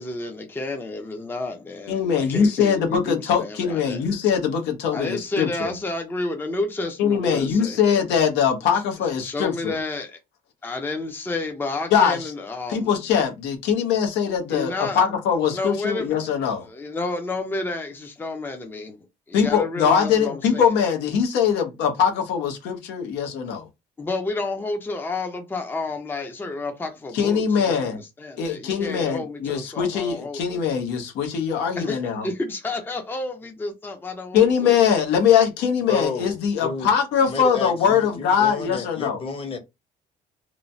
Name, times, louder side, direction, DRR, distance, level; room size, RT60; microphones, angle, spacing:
voice 1, 0.0-4.0 4.9-7.8 9.2-10.2 10.6-12.9 14.5-15.0 15.5-16.2 16.6-20.8 24.0-30.6 31.8-34.8, left 2 dB, 10° left, 0.5 m, -31 dB
voice 2, 1.9-5.7 7.0-9.8 11.9-12.3 12.7-16.7 19.3-23.7 27.1-28.0 28.4-32.3 34.3-39.2, left 7 dB, 85° left, 0.9 m, -22 dB
voice 3, 35.8-36.9 37.2-39.6, left 4 dB, 35° left, 0.9 m, -31 dB
3.0 x 2.2 x 2.6 m
cardioid pair, 110°, 17 cm